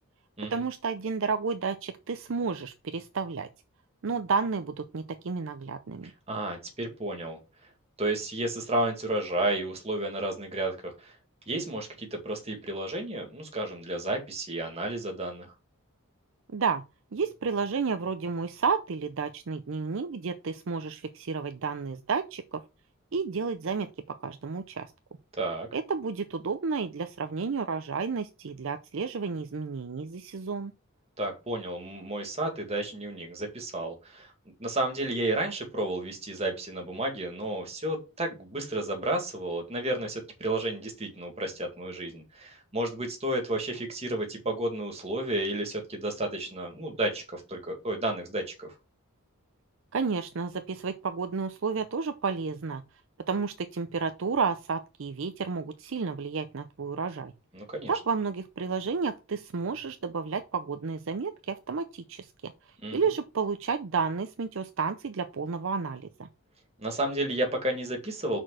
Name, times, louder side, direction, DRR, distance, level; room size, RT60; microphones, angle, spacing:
voice 1, 0.5-3.5 4.0-6.1 16.5-16.8 17.1-22.6 23.1-24.9 25.7-30.7 49.9-52.8 53.3-57.3 57.9-62.5 62.9-66.3, right 5 dB, 60° right, 9 dB, 0.5 m, -31 dB
voice 2, 6.3-7.4 8.0-11.2 11.5-15.5 25.4-25.7 31.2-34.3 34.6-48.7 57.5-57.9 62.8-63.0 66.8-68.4, right 1 dB, 30° right, 3 dB, 1.9 m, -32 dB
6.1 x 4.5 x 6.3 m, 0.29 s
head